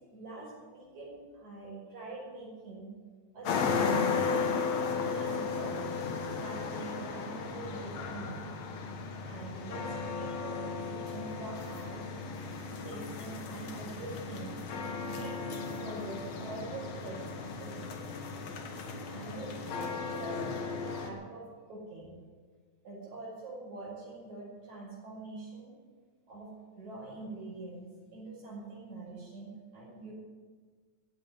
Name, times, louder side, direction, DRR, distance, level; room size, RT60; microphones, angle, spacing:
voice 1, 0.1-2.9 3.3-4.6 5.0-5.9 6.3-8.4 9.3-12.1 12.8-14.6 15.1-17.9 19.1-20.4 20.8-22.1 22.8-25.7 26.3-26.5 26.8-30.1, right 2 dB, 70° right, -3 dB, 6.8 m, -44 dB
sound 1, 3.4-21.1, left 5 dB, 65° left, 2.7 m, -35 dB
15.0 x 9.3 x 9.4 m, 1.5 s
omnidirectional pair, 3.5 m